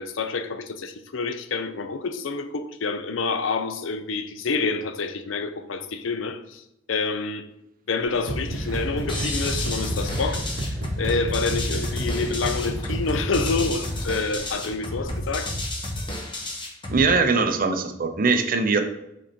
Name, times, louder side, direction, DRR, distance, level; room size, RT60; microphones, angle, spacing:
voice 1, 0.0-6.6 6.9-7.5 7.9-15.5, left 4 dB, 85° left, 0.6 m, -28 dB
sound 1, 8.0-15.6, equal, 5° right, 1.9 m, -43 dB
sound 2, 8.3-13.8, right 1 dB, 75° right, 1.0 m, -30 dB
sound 3, 9.1-17.1, left 1 dB, 25° left, 1.1 m, -31 dB
voice 2, 16.9-18.8, right 4 dB, 45° right, 0.7 m, -21 dB
6.2 x 4.2 x 4.3 m
head